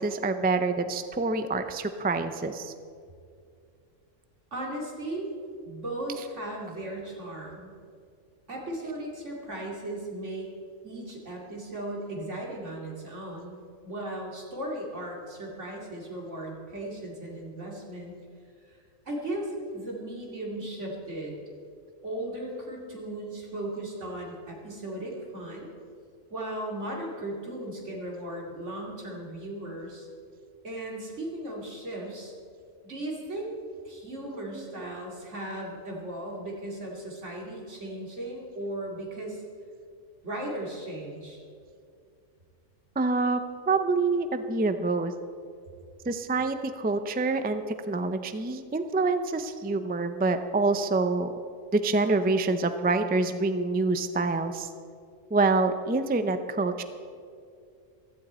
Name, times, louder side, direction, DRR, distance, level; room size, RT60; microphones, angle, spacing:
voice 1, 0.0-2.7 6.1-6.3 34.6-34.9 43.0-43.4 43.7-45.1 46.1-51.3 51.7-54.7 55.3-56.8, right 3 dB, 15° right, 9 dB, 0.3 m, -26 dB
voice 2, 4.5-5.3 5.6-7.7 8.5-10.5 10.8-13.6 13.8-18.1 18.6-18.8 19.0-21.4 22.0-25.7 26.3-30.1 30.6-32.3 32.8-33.6 33.8-39.4 40.2-41.4, right 1 dB, 70° right, -2 dB, 3.0 m, -36 dB
16.0 x 14.5 x 4.3 m, 2.4 s
omnidirectional pair, 1.3 m